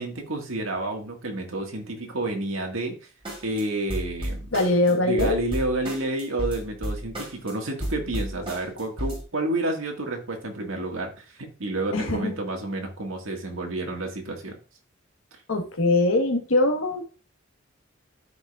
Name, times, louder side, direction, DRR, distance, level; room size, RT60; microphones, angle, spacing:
voice 1, 0.0-2.9 3.4-4.5 4.9-11.1 11.6-14.6, right 2 dB, 85° right, 2 dB, 1.9 m, -30 dB
sound 1, 3.3-3.6 3.9-4.9 5.2-7.5 7.8-9.2, equal, 25° right, 3.4 m, -32 dB
voice 2, 4.5-5.4 11.9-12.4 15.5-17.2, left 2 dB, 85° left, 4 dB, 1.5 m, -22 dB
13.0 x 5.1 x 2.5 m, 0.33 s
head